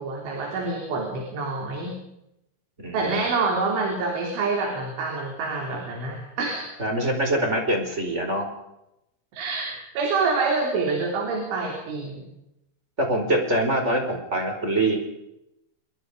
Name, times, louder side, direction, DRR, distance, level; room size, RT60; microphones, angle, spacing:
voice 1, 0.0-1.9 2.9-6.7 9.3-12.3, right 4 dB, 75° right, 1 dB, 6.0 m, -27 dB
voice 2, 2.8-3.2 6.8-8.5 13.0-15.0, right 1 dB, 15° right, 3 dB, 4.6 m, -24 dB
27.5 x 22.5 x 5.1 m, 0.85 s
omnidirectional pair, 5.5 m